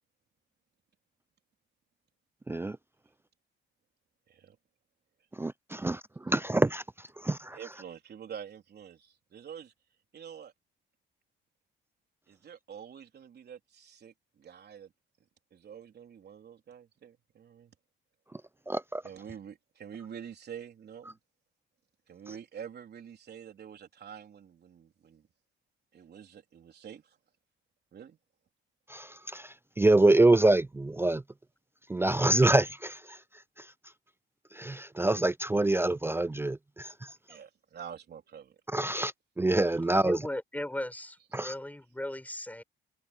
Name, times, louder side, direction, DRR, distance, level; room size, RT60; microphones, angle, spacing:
voice 1, 2.5-2.8 5.3-7.6 18.3-19.0 28.9-31.2 31.9-33.7 34.5-37.2 38.7-40.3 41.3-41.5, right 2 dB, 10° right, 0.4 m, -26 dB
voice 2, 7.5-9.7 10.1-10.5 12.3-14.9 15.5-17.8 19.0-21.2 22.1-25.3 25.9-27.2 27.9-28.2 37.3-38.6, right 8 dB, 55° right, 3.8 m, -47 dB
voice 3, 40.0-42.6, left 1 dB, 10° left, 7.3 m, -37 dB
cardioid pair, 90°, 20 cm